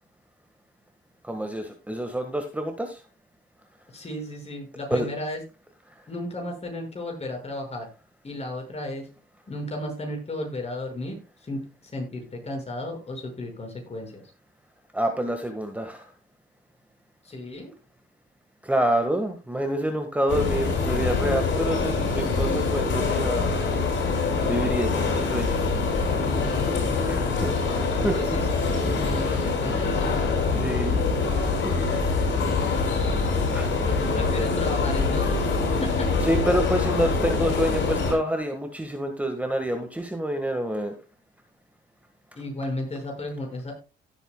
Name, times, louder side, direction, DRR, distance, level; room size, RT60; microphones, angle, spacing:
voice 1, 1.2-3.0 4.9-5.1 14.9-16.1 18.6-23.5 24.5-25.6 27.1-27.6 27.9-28.5 29.1-29.8 30.5-31.1 31.4-31.7 32.5-32.9 33.5-33.8 35.7-35.9 36.2-41.0, right 1 dB, 5° right, 5 dB, 1.6 m, -28 dB
voice 2, 3.9-5.4 6.1-7.9 8.2-9.0 9.5-11.2 11.5-14.2 17.2-17.7 26.5-27.8 28.1-30.2 33.8-35.5 35.8-36.1 42.4-43.8, left 1 dB, 30° left, 2 dB, 5.8 m, -34 dB
sound 1, 20.3-38.1, left 4 dB, 65° left, 5.3 m, -24 dB
17.0 x 8.1 x 2.3 m, 0.29 s
cardioid pair, 90°, 20 cm